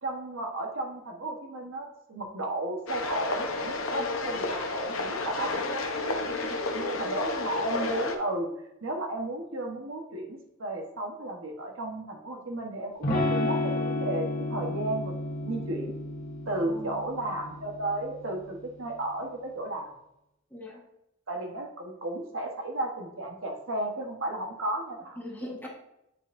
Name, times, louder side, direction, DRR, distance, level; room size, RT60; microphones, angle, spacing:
voice 1, 0.0-5.6 6.7-8.5 8.8-15.1 15.4-15.9 16.5-19.9 21.3-25.2, right 1 dB, 70° right, 1 dB, 1.2 m, -34 dB
sound 1, 2.9-8.2, left 2 dB, 75° left, 0.9 m, -31 dB
voice 2, 6.3-6.7 16.6-17.0 20.5-20.8 25.2-25.7, left 1 dB, 10° left, -2 dB, 1.3 m, -41 dB
Electric guitar / Strum, 13.0-18.7, left 2 dB, 40° left, 1.7 m, -32 dB
8.3 x 5.4 x 2.6 m, 0.83 s
head